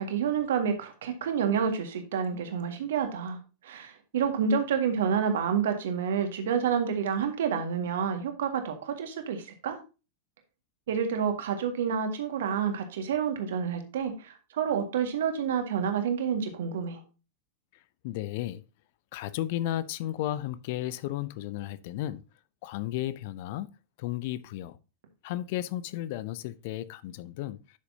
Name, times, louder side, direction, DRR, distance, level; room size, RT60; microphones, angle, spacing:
voice 1, 0.0-3.4 3.6-9.8 10.9-17.0, right 7 dB, 60° right, 1.8 m, -29 dB
voice 2, 18.0-18.6 19.1-22.2 22.6-23.7 24.0-24.8 25.2-27.8, left 13 dB, 50° left, 0.6 m, -34 dB
11.0 x 6.7 x 2.8 m
figure-of-eight pair, 90°, 0 cm